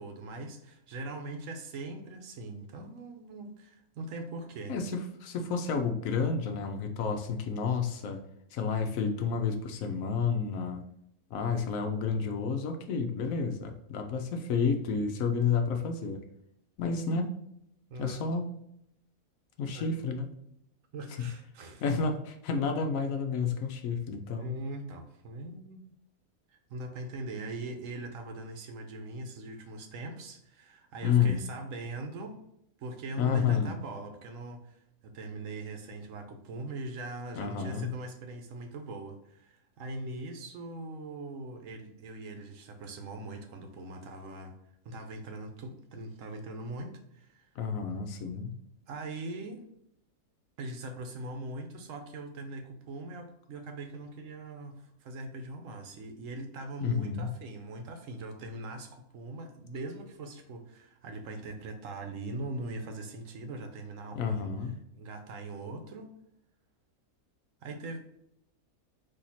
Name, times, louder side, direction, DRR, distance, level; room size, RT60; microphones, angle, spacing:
voice 1, 0.0-4.7 17.9-18.2 19.7-19.9 20.9-21.8 24.3-25.8 26.5-32.4 32.8-44.5 44.8-47.5 48.9-49.6 50.6-64.5 64.9-66.1 67.6-68.0, right 2 dB, 65° right, 5 dB, 1.0 m, -41 dB
voice 2, 4.7-8.2 8.5-10.8 11.3-16.2 16.8-17.3 18.0-18.5 19.6-20.3 21.2-21.3 21.8-24.5 31.0-31.4 33.2-33.7 37.4-37.9 47.6-48.5 56.8-57.3 64.2-64.7, left 5 dB, 70° left, 5 dB, 1.0 m, -30 dB
4.4 x 2.8 x 4.1 m, 0.77 s
omnidirectional pair, 1.5 m